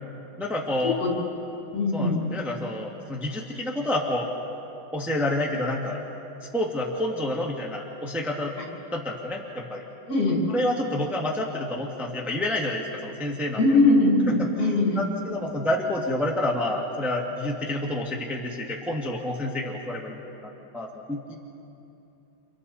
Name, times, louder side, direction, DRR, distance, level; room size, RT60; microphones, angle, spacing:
voice 1, 0.4-1.0 1.9-4.3 4.9-6.0 6.5-8.5 8.9-9.8 10.5-13.6 14.4-21.3, left 1 dB, ahead, -2 dB, 1.8 m, -29 dB
voice 2, 1.7-2.2 10.1-10.4 13.6-15.0, left 2 dB, 45° left, -1 dB, 5.2 m, -21 dB
29.5 x 28.5 x 4.3 m, 2.8 s
omnidirectional pair, 2.3 m